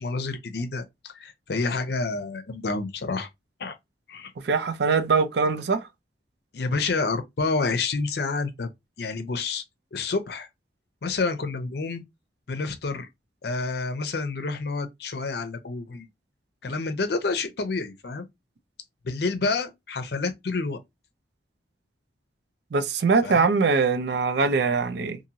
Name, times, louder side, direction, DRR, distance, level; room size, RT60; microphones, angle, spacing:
voice 1, 0.0-3.3 3.6-3.7 4.1-4.3 6.5-8.7 9.0-9.6 9.9-10.5 11.0-12.0 12.5-13.1 13.4-16.1 16.6-18.2 19.0-20.8 23.2-23.5, left 3 dB, 60° left, 0.5 m, -29 dB
voice 2, 4.4-5.9 22.7-25.2, right 4 dB, 65° right, 0.4 m, -22 dB
2.6 x 2.6 x 2.8 m
head